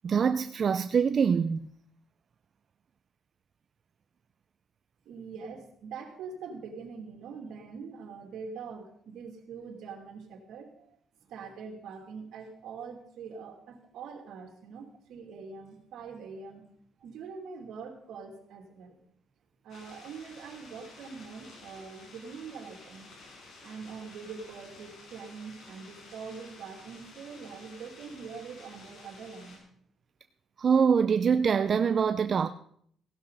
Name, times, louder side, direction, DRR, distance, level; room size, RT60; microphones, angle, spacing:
voice 1, 0.0-1.7 30.6-32.5, right 6 dB, 50° right, 0.5 m, -24 dB
voice 2, 5.0-16.7 17.0-19.0 19.6-23.1 23.6-29.6, right 5 dB, 80° right, 2.7 m, -44 dB
sound 1, 19.7-29.6, left 3 dB, 70° left, 5.7 m, -52 dB
16.5 x 12.0 x 4.1 m
cardioid pair, 90°, 0 cm